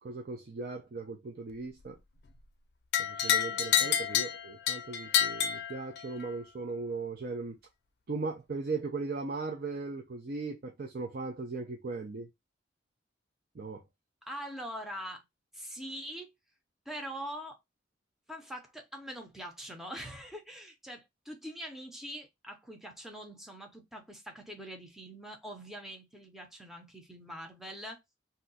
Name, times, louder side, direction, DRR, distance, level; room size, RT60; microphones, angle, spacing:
voice 1, 0.0-2.0 3.0-7.6 8.1-12.3 13.5-13.8, right 3 dB, 55° right, 0.5 m, -38 dB
sound 1, 2.9-6.3, left 9 dB, 60° left, 0.5 m, -29 dB
voice 2, 3.5-4.0 14.3-15.2 15.5-16.3 16.9-17.6 18.3-28.0, equal, ahead, 0.7 m, -43 dB
2.7 x 2.2 x 3.9 m
head